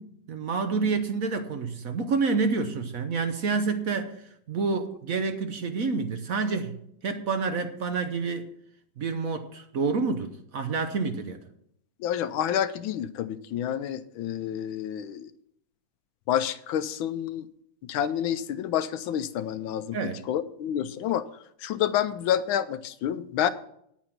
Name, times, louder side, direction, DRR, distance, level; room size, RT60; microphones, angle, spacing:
voice 1, 0.0-8.5 9.0-11.4 19.9-20.3, right 4 dB, 60° right, 0.9 m, -28 dB
voice 2, 12.0-15.3 16.3-17.5 17.9-20.0 20.3-21.2 21.6-23.5, left 10 dB, 75° left, 1.3 m, -28 dB
9.6 x 8.8 x 5.9 m
omnidirectional pair, 2.4 m